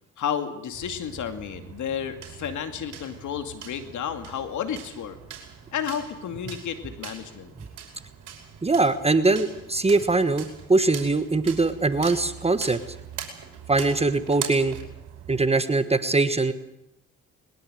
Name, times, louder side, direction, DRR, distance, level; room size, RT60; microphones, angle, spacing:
voice 1, 0.2-5.2 5.7-7.5, left 8 dB, 75° left, 8 dB, 2.4 m, -32 dB
sound 1, 0.7-15.5, right 9 dB, 80° right, 5.4 m, -42 dB
voice 2, 8.6-12.8 13.7-14.8 15.3-16.5, right 3 dB, 20° right, 11 dB, 1.4 m, -22 dB
21.5 x 21.0 x 8.0 m, 0.85 s
cardioid pair, 90°, 30 cm